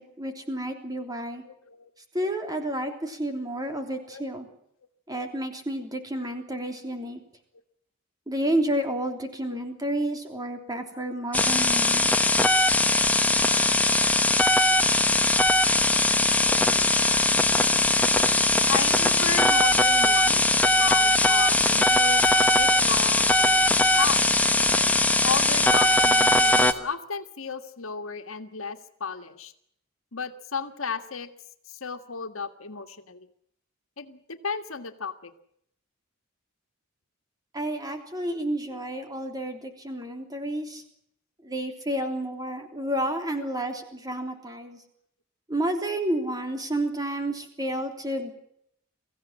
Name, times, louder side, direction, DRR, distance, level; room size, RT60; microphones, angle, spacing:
voice 1, 0.0-1.4 2.1-4.5 5.1-7.2 8.3-12.3 37.5-40.8 41.4-44.8 45.5-48.3, right 1 dB, 20° right, 5 dB, 3.3 m, -30 dB
voice 2, 1.4-1.9 4.1-4.2 9.5-9.6 10.9-11.1 18.7-22.2 22.6-24.2 25.2-29.5 30.1-31.3 31.7-33.3 34.0-35.3 38.7-38.8 42.1-42.2 42.7-43.1 43.4-43.5, left 5 dB, 80° left, 7 dB, 1.7 m, -34 dB
sound 1, 11.3-26.7, left 2 dB, 5° left, 1.2 m, -20 dB
23.5 x 15.5 x 9.9 m, 0.72 s
head